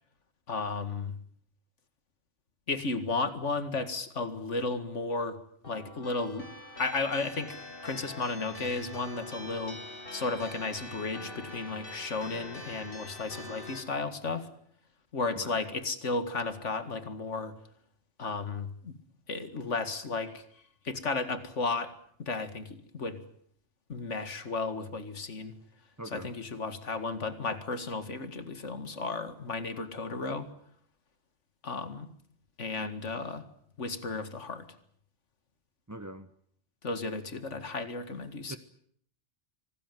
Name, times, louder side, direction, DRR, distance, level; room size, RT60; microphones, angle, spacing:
voice 1, 0.5-1.1 2.7-5.4 5.7-6.5 6.8-9.8 10.1-14.5 15.1-17.5 18.2-19.0 19.3-20.4 20.8-21.9 22.2-23.2 23.9-25.5 26.1-30.5 31.6-32.1 32.6-33.5 33.8-34.7 36.8-38.6, left 3 dB, 85° left, 2.3 m, -34 dB
sound 1, 5.6-13.8, left 1 dB, 50° left, 4.3 m, -44 dB
voice 2, 26.0-26.3 35.9-36.3 38.5-38.6, right 1 dB, 15° right, 1.0 m, -42 dB
25.5 x 19.0 x 9.3 m
omnidirectional pair, 1.2 m